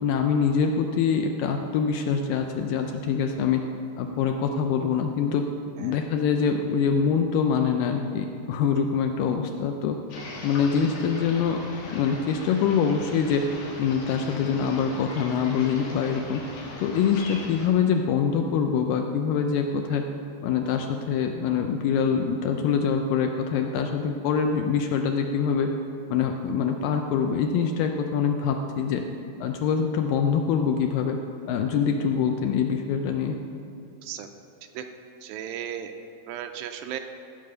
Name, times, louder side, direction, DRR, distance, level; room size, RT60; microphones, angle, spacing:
voice 1, 0.0-3.6 4.0-5.4 5.8-10.0 10.4-11.6 11.9-13.4 13.8-16.4 16.8-20.0 20.4-25.7 26.1-29.0 29.4-31.2 31.5-33.4, left 6 dB, 80° left, 4 dB, 2.1 m, -24 dB
sound 1, 10.1-17.7, left 2 dB, 60° left, 2.7 m, -40 dB
voice 2, 35.2-35.9 36.3-37.0, right 10 dB, 80° right, 6 dB, 2.3 m, -35 dB
14.5 x 5.2 x 6.7 m, 2.7 s
omnidirectional pair, 4.4 m